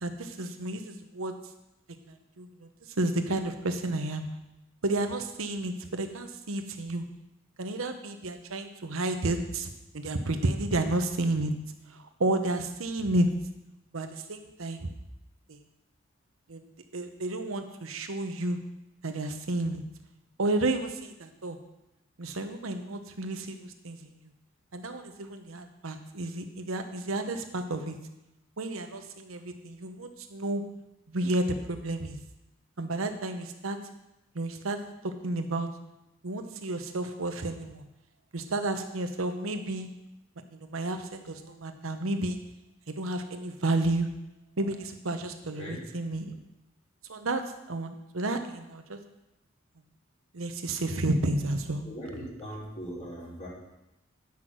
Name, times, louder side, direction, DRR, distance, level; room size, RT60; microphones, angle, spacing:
voice 1, 0.0-1.4 2.1-2.7 3.0-4.2 4.8-7.1 7.6-9.7 9.9-11.5 11.9-13.3 13.9-14.9 15.5-15.6 16.5-16.6 16.9-18.6 19.0-19.8 20.4-21.6 22.2-24.1 24.7-28.0 28.6-30.6 31.1-32.2 32.8-33.8 34.3-34.8 35.0-35.7 36.2-37.8 38.3-39.9 40.5-42.4 42.9-44.1 44.6-46.4 47.1-49.0 50.3-51.9, right 2 dB, 85° right, 7 dB, 1.0 m, -31 dB
voice 2, 51.8-53.5, equal, 35° left, -7 dB, 2.9 m, -39 dB
9.7 x 5.9 x 6.2 m, 0.93 s
head